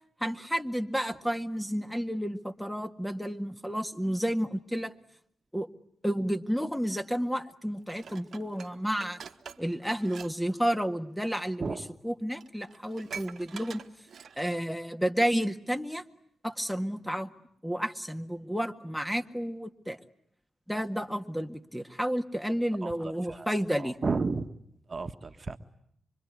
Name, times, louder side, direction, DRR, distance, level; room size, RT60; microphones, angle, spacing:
voice 1, 0.2-4.9 5.5-5.7 6.0-9.2 9.6-11.8 12.0-13.8 14.4-16.0 16.4-17.3 17.6-20.0 20.7-24.0, equal, ahead, 7 dB, 1.8 m, -31 dB
Dishes pots and pans, 7.9-10.3 10.6-10.8 11.7-11.8 12.1-12.2 12.4-14.6 15.1-15.2, right 6 dB, 60° right, 1.4 m, -45 dB
voice 2, 23.8-24.5 24.9-25.6, right 4 dB, 40° right, 8 dB, 1.5 m, -32 dB
25.5 x 24.5 x 9.6 m, 0.70 s
hypercardioid pair, 40°, 0 cm